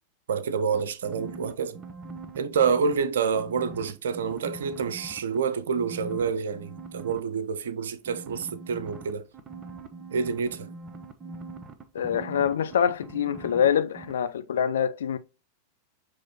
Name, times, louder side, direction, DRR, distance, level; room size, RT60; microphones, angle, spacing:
voice 1, 0.3-1.8 2.3-9.2 10.1-10.7, right 6 dB, 65° right, 0.5 m, -28 dB
sound 1, 0.7-3.0 3.3-5.4 5.7-7.2 8.0-13.7 13.9-14.1, right 4 dB, 20° right, 0.7 m, -42 dB
voice 2, 11.9-15.2, left 8 dB, 65° left, 0.4 m, -25 dB
6.2 x 3.0 x 2.8 m
figure-of-eight pair, 90°, 0 cm